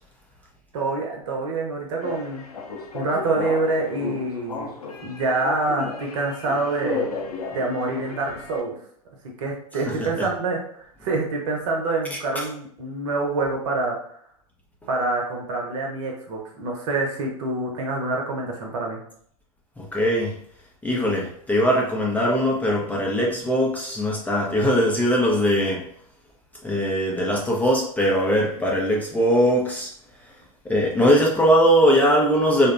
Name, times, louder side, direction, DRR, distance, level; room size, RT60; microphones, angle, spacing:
voice 1, 0.7-2.4 2.9-4.7 5.0-7.0 7.5-8.8 9.4-14.0 14.9-19.0, right 3 dB, 60° right, 0 dB, 0.8 m, -26 dB
sound 1, 2.0-8.6, left 4 dB, 85° left, 0.5 m, -34 dB
voice 2, 9.9-10.3 12.4-12.5 19.8-20.3 20.8-25.9 26.6-29.9 30.6-32.7, equal, 10° left, -2 dB, 0.4 m, -21 dB
2.6 x 2.1 x 2.4 m, 0.62 s
hypercardioid pair, 100°, 19 cm